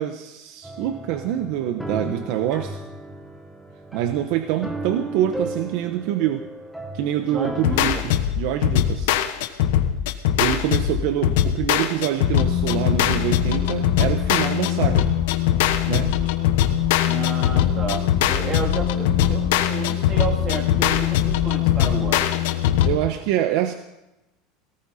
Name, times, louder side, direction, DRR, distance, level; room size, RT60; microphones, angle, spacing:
voice 1, 0.0-2.8 3.9-6.5 6.9-9.1 10.4-15.1 15.9-16.1 22.9-23.8, right 11 dB, 60° right, 8 dB, 1.0 m, -25 dB
sound 1, 0.6-8.0, right 1 dB, ahead, 1.4 m, -35 dB
voice 2, 7.3-8.0 17.1-22.3, right 4 dB, 25° right, 1 dB, 3.3 m, -31 dB
sound 2, 7.6-23.0, left 11 dB, 90° left, 1.3 m, -21 dB
18.5 x 18.0 x 4.2 m, 0.96 s
cardioid pair, 165°, 0 cm